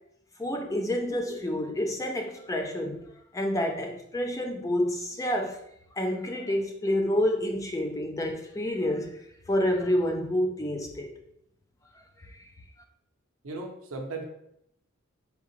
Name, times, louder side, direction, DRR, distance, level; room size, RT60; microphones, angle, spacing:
voice 1, 0.4-3.1 3.3-5.6 5.9-9.2 9.5-11.1 12.2-12.5, left 1 dB, 15° left, 3 dB, 0.4 m, -28 dB
voice 2, 1.1-1.4 13.4-14.2, right 2 dB, 80° right, 1 dB, 0.7 m, -37 dB
3.6 x 3.5 x 3.1 m, 0.76 s
head